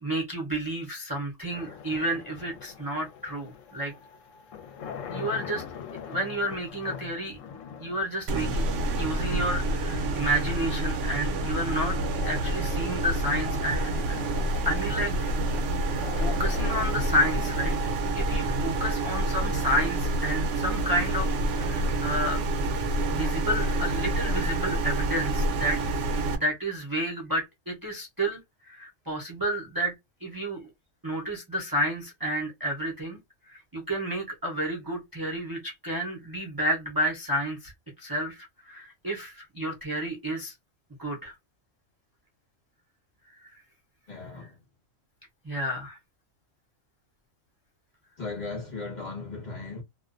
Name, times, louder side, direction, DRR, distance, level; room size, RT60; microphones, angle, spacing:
voice 1, 0.0-3.9 5.1-5.6 6.1-7.4 7.8-14.2 14.6-15.4 15.9-21.3 21.5-22.4 23.1-25.8 26.4-29.9 30.2-30.6 31.0-33.2 33.5-37.7 38.0-40.5 41.0-41.3 43.4-43.6 45.4-46.0, equal, 25° right, 0.5 m, -31 dB
sound 1, 1.5-20.6, left 7 dB, 70° left, 0.9 m, -43 dB
sound 2, 8.3-26.4, right 2 dB, 70° right, 0.9 m, -28 dB
voice 2, 44.1-44.5 48.2-49.8, left 3 dB, 35° left, 1.1 m, -37 dB
2.4 x 2.1 x 2.4 m
omnidirectional pair, 1.4 m